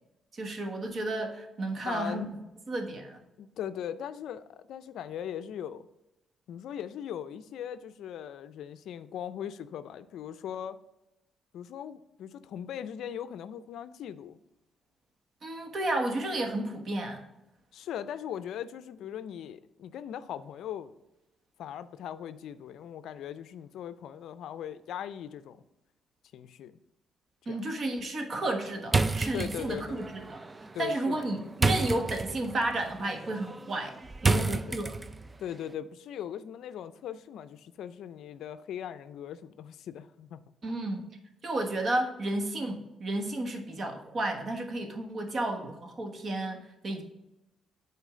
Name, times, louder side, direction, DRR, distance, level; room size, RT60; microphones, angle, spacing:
voice 1, 0.3-2.4 2.7-3.2 15.4-17.2 27.5-30.4 30.8-34.0 34.2-34.9 40.6-41.0 41.4-47.0, right 2 dB, 45° right, 4 dB, 1.3 m, -32 dB
voice 2, 1.8-2.3 3.4-5.9 6.5-10.8 11.5-14.4 17.7-20.9 21.6-25.6 26.3-26.8 27.5-27.6 29.3-30.0 30.7-31.2 34.3-34.9 35.4-40.4, left 9 dB, 75° left, 13 dB, 0.4 m, -39 dB
sound 1, 28.9-35.4, right 3 dB, 20° right, 0.4 m, -31 dB
8.2 x 4.5 x 3.7 m, 0.95 s
cardioid pair, 90°, 0 cm